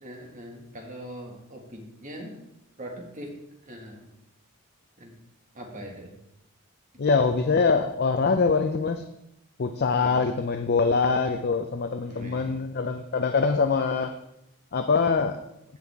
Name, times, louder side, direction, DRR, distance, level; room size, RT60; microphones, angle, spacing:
voice 1, 0.0-2.4 2.8-3.3 3.6-4.1 5.0-5.1 5.5-6.2 9.9-10.3 12.0-12.7, equal, 35° right, 0 dB, 1.9 m, -41 dB
voice 2, 7.0-9.0 9.6-14.1 14.7-15.4, left 4 dB, 45° left, 7 dB, 0.5 m, -24 dB
16.0 x 5.6 x 3.6 m, 0.83 s
head